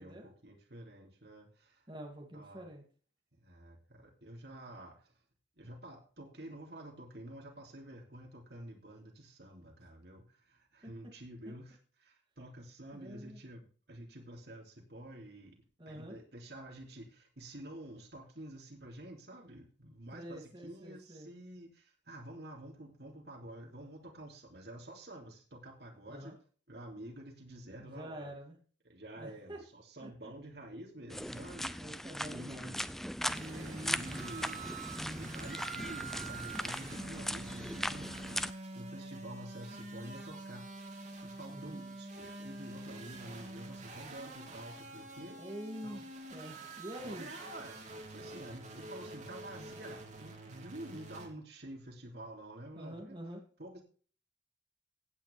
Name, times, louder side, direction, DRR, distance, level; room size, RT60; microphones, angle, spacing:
voice 1, 0.0-1.8 2.3-2.6 3.4-5.1 5.6-15.5 15.9-26.3 26.7-28.3 28.8-31.9 32.3-32.8 33.3-45.4 45.8-46.0 47.0-53.2 53.6-53.8, right 1 dB, 65° right, 2 dB, 3.0 m, -49 dB
voice 2, 1.9-2.8 12.9-13.4 15.8-16.2 20.1-21.3 26.1-26.3 27.8-28.6 29.2-29.6 30.0-30.3 31.7-32.9 41.5-41.8 45.4-46.0 46.3-47.3 52.7-53.4, equal, 25° right, 0 dB, 2.7 m, -46 dB
sound 1, 31.1-38.5, equal, ahead, 0.4 m, -39 dB
sound 2, 33.2-51.3, right 3 dB, 45° right, 2.7 m, -46 dB
16.0 x 9.2 x 3.5 m, 0.40 s
head